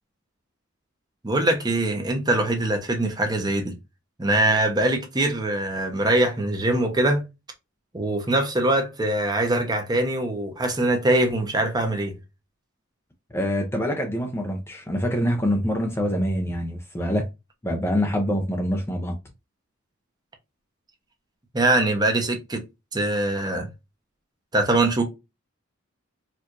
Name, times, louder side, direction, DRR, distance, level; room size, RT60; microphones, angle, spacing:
voice 1, 1.2-3.7 4.2-7.2 7.9-12.2 21.5-22.6 22.9-23.7 24.5-25.0, right 1 dB, 20° right, 0.7 m, -23 dB
voice 2, 13.3-17.3 17.6-19.2, equal, 10° left, 0.5 m, -25 dB
4.5 x 2.5 x 2.4 m
head